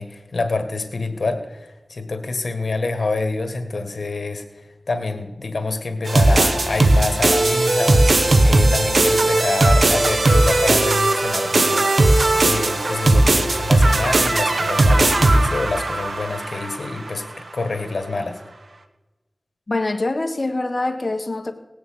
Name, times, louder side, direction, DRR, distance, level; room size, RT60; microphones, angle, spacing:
voice 1, 0.0-4.4 4.9-12.1 12.3-17.2 17.5-18.4, left 3 dB, 80° left, 7 dB, 1.7 m, -26 dB
sound 1, 6.1-17.2, right 2 dB, 70° right, 1.1 m, -17 dB
voice 2, 19.7-21.5, left 2 dB, 45° left, 5 dB, 1.5 m, -24 dB
18.5 x 7.1 x 8.7 m, 1.1 s
wide cardioid pair, 70°, 0 cm